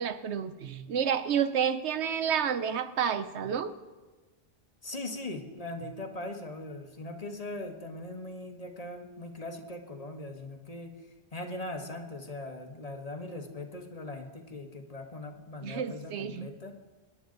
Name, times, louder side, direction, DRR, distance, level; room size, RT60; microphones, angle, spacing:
voice 1, 0.0-3.7 15.6-16.5, right 8 dB, 80° right, 12 dB, 1.0 m, -30 dB
voice 2, 4.8-11.0 11.3-16.7, left 2 dB, 35° left, 4 dB, 1.3 m, -40 dB
24.5 x 11.0 x 3.9 m, 1.3 s
omnidirectional pair, 1.1 m